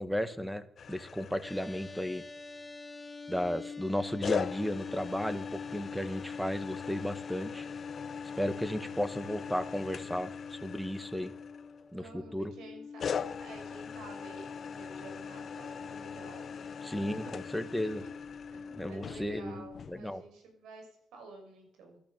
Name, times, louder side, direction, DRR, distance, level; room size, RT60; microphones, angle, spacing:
voice 1, 0.0-2.2 3.3-7.7 8.4-11.3 11.9-12.5 16.8-18.0 18.8-20.2, equal, ahead, 10 dB, 1.5 m, -34 dB
sound 1, 0.8-2.3 4.2-12.0 13.0-20.0, left 7 dB, 50° left, 0.9 m, -42 dB
sound 2, 1.4-19.8, left 5 dB, 25° left, 1.4 m, -44 dB
voice 2, 11.9-17.6 17.8-18.1 18.5-22.0, right 3 dB, 85° right, 3 dB, 6.1 m, -51 dB
13.5 x 12.0 x 7.3 m, 0.70 s
cardioid pair, 90°, 0 cm